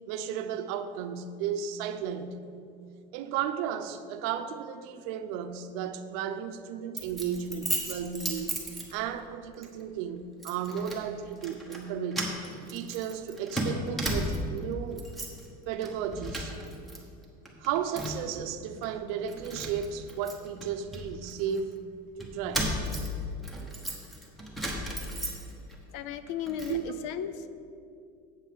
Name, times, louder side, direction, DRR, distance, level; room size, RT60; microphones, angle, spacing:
voice 1, 0.1-2.4 3.1-12.3 12.7-15.0 15.7-16.6 17.6-21.8 22.2-22.7 26.7-26.8, right 8 dB, 65° right, 0.7 m, -34 dB
Keys jangling, 7.0-9.3 9.6-9.8 10.4-11.0 11.4-11.8 12.1-14.6 14.9-15.5 15.8-17.0 17.2-18.4 18.8-18.9 19.3-21.6 22.2-25.8 26.1-26.8, equal, ahead, 1.0 m, -35 dB
voice 2, 25.9-27.5, left 8 dB, 65° left, 0.6 m, -35 dB
8.0 x 5.5 x 7.6 m
cardioid pair, 170°, 20 cm